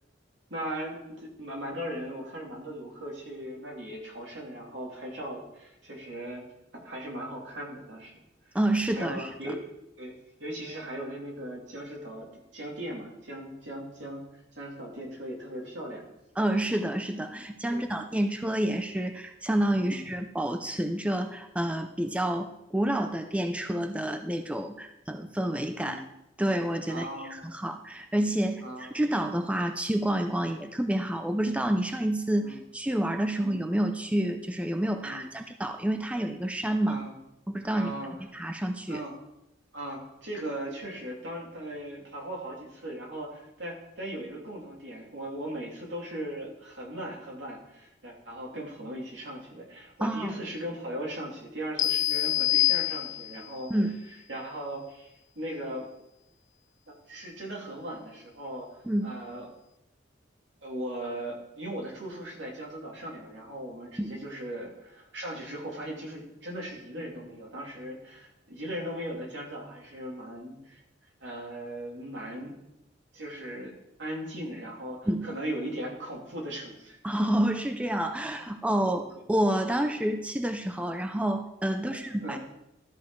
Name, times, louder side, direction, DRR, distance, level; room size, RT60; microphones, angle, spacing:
voice 1, 0.5-6.4 6.7-8.1 8.9-9.6 10.0-14.2 14.6-16.0 17.7-17.9 19.8-20.1 25.7-26.0 26.9-27.5 28.6-28.9 32.4-32.6 33.3-33.5 35.0-35.3 36.9-37.1 37.7-38.1 38.9-39.1 39.7-53.7 54.3-55.9 56.9-58.7 59.0-59.5 60.6-70.8 71.2-72.5 73.1-73.7 74.0-77.0 78.2-78.3 78.8-79.0 81.8-82.4, right 1 dB, 70° right, -2 dB, 2.7 m, -38 dB
voice 2, 8.5-9.3 16.4-26.0 26.4-37.0 37.5-37.9 38.3-39.0 50.0-50.3 53.7-54.0 58.9-59.1 64.0-64.2 75.1-75.3 77.0-79.0 79.3-82.4, right 1 dB, 5° right, 6 dB, 0.4 m, -28 dB
sound 1, 51.8-53.5, left 15 dB, 45° left, 0.6 m, -26 dB
13.0 x 6.6 x 4.6 m, 0.85 s
head